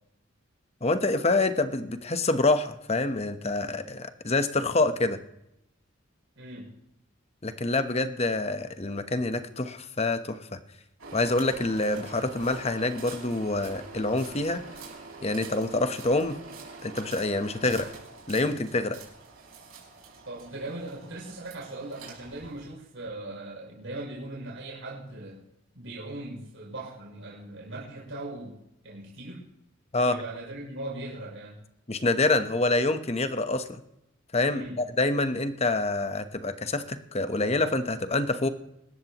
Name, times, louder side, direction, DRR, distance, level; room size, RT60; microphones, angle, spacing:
voice 1, 0.8-5.2 7.4-10.6 11.1-14.6 15.2-16.4 16.8-17.9 18.3-19.0 29.9-30.2 31.9-33.8 34.3-38.5, left 2 dB, 30° left, 10 dB, 1.0 m, -26 dB
voice 2, 6.4-6.8 20.3-25.4 25.8-29.4 29.9-31.6 34.5-34.8, right 2 dB, 70° right, -5 dB, 6.9 m, -39 dB
sound 1, 11.0-22.6, right 4 dB, 90° right, 5.1 m, -45 dB
25.5 x 13.0 x 3.0 m, 0.84 s
head